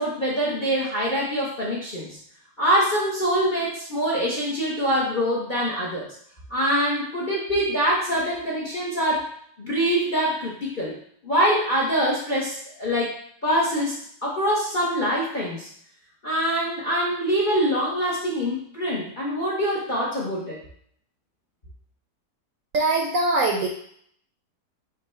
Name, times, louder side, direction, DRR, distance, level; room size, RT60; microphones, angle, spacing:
voice 1, 0.0-2.2 2.6-6.1 6.5-9.3 9.6-11.0 11.2-15.7 16.2-20.6, equal, 45° left, -5 dB, 0.6 m, -24 dB
voice 2, 22.7-23.7, right 2 dB, 65° right, 0 dB, 0.8 m, -22 dB
5.3 x 2.2 x 4.2 m, 0.63 s
omnidirectional pair, 1.8 m